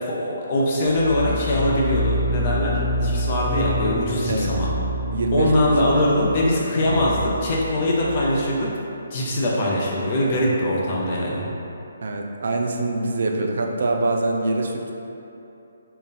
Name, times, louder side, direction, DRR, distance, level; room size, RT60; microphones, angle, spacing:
voice 1, 0.0-4.7 5.3-8.7 9.1-11.5, left 1 dB, 35° left, -4 dB, 0.7 m, -22 dB
sound 1, 0.8-8.5, equal, 80° right, 1.2 m, -28 dB
voice 2, 5.1-6.0 12.0-14.9, right 2 dB, 65° right, 1 dB, 0.4 m, -24 dB
3.9 x 2.3 x 4.1 m, 2.9 s
hypercardioid pair, 160°, 0 cm